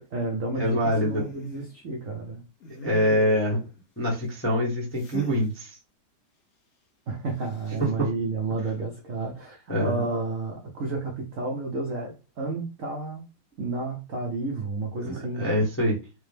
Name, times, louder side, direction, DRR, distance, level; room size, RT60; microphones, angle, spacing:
voice 1, 0.0-2.4 7.1-13.2 13.6-15.5, right 3 dB, 65° right, 0.8 m, -31 dB
voice 2, 0.5-1.3 2.7-3.6 4.0-5.8 7.8-8.1 9.7-10.1 15.0-16.0, equal, 10° left, 0.7 m, -25 dB
sound 1, 1.1-1.7 2.6-3.5 5.0-5.5 7.4-7.8, left 4 dB, 85° left, 0.6 m, -40 dB
4.7 x 2.1 x 3.3 m
omnidirectional pair, 2.3 m